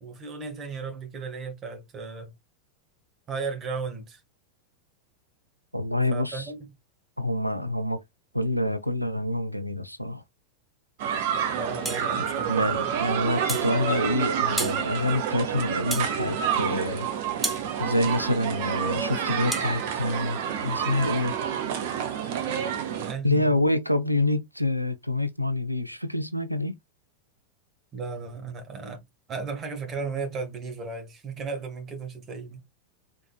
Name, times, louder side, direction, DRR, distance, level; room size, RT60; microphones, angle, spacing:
voice 1, 0.0-2.3 3.3-4.2 6.1-6.7 11.5-12.9 23.0-23.6 27.9-29.0 29.3-32.6, right 4 dB, 25° right, 1.4 m, -35 dB
voice 2, 5.7-6.5 7.2-8.0 8.3-10.2 12.2-17.1 17.8-21.3 23.2-26.7, left 1 dB, 90° left, 0.5 m, -27 dB
sound 1, 11.0-23.1, right 8 dB, 50° right, 0.9 m, -29 dB
sound 2, 11.8-12.1 13.5-13.7 14.6-14.8 15.9-16.1 17.4-17.6 19.5-19.7, right 2 dB, 5° right, 0.7 m, -31 dB
3.7 x 3.6 x 2.3 m
figure-of-eight pair, 90°, 0 cm